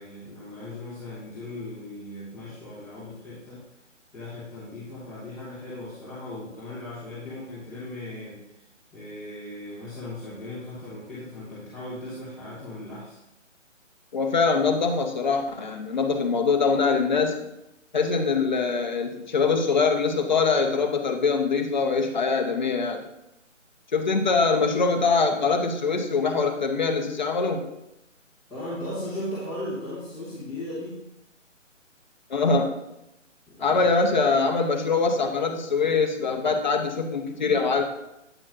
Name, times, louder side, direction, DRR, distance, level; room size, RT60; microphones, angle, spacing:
voice 1, 0.0-3.6 4.1-8.6 8.9-13.2 28.5-31.0 33.5-33.8, left 1 dB, ahead, -15 dB, 1.2 m, -37 dB
voice 2, 14.1-17.5 17.9-23.0 23.9-27.7 32.3-32.7 33.6-37.8, left 4 dB, 35° left, 5 dB, 0.7 m, -23 dB
8.8 x 6.0 x 2.6 m, 0.89 s
figure-of-eight pair, 150°, 39 cm